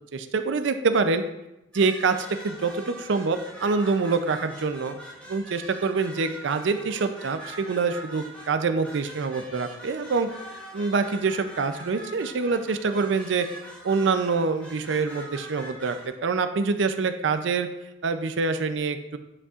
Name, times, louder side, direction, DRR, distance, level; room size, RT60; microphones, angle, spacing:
voice 1, 0.1-1.2 1.7-5.0 5.3-10.3 10.7-13.5 13.8-17.7 18.0-19.2, right 4 dB, 70° right, 9 dB, 0.5 m, -25 dB
sound 1, 1.7-16.1, right 1 dB, 5° left, 1.4 m, -43 dB
9.4 x 5.3 x 2.4 m, 0.92 s
head